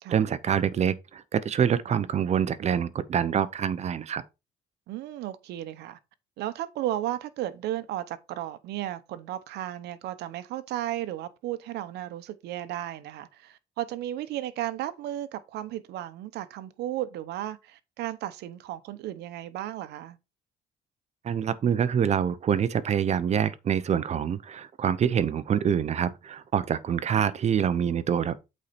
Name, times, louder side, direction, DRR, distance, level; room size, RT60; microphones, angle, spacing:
voice 1, 0.1-4.2 21.2-28.3, right 8 dB, 40° right, 0.8 m, -26 dB
voice 2, 4.9-6.0 6.4-20.2, right 13 dB, 80° right, 0.9 m, -34 dB
8.3 x 4.4 x 4.2 m
cardioid pair, 110°, 17 cm